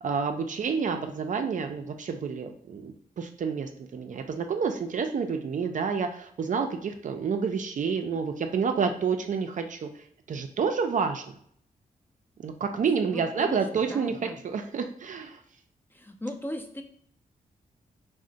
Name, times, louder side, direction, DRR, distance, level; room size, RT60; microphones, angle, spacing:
voice 1, 0.0-9.9 10.3-11.3 12.4-15.4, right 6 dB, 55° right, 6 dB, 0.4 m, -29 dB
voice 2, 13.1-14.4 15.9-16.8, left 1 dB, 15° left, 4 dB, 0.4 m, -37 dB
2.4 x 2.1 x 3.8 m, 0.64 s
cardioid pair, 60°, 16 cm